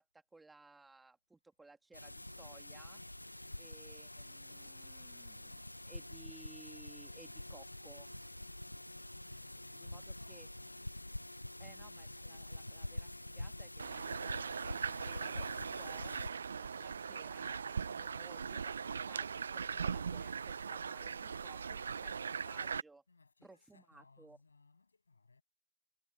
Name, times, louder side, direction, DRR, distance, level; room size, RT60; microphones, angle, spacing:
voice 1, 0.0-3.0 3.6-8.1 9.7-10.5 11.6-13.1 13.4-16.1 16.6-23.0 23.4-24.4, right 3 dB, 5° right, 2.6 m, -60 dB
sound 1, 1.9-16.3, left 1 dB, 90° left, 0.7 m, -47 dB
voice 2, 9.1-11.1 23.1-25.4, left 4 dB, 60° left, 7.7 m, -65 dB
sound 2, 13.8-22.8, right 6 dB, 45° right, 0.7 m, -40 dB
figure-of-eight pair, 155°, 0 cm